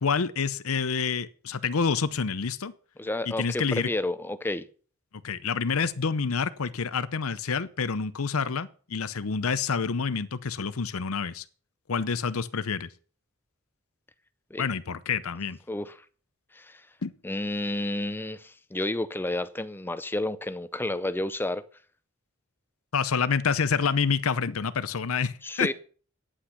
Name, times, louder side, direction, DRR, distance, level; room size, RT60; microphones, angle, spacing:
voice 1, 0.0-2.7 3.3-3.9 5.2-11.4 11.9-12.9 14.6-15.6 17.0-17.1 22.9-25.7, left 5 dB, 75° left, 0.7 m, -28 dB
voice 2, 3.0-4.6 14.5-14.7 15.7-16.0 16.5-16.8 17.2-21.6 25.4-25.7, left 1 dB, 10° left, 0.5 m, -30 dB
9.8 x 8.8 x 5.7 m
head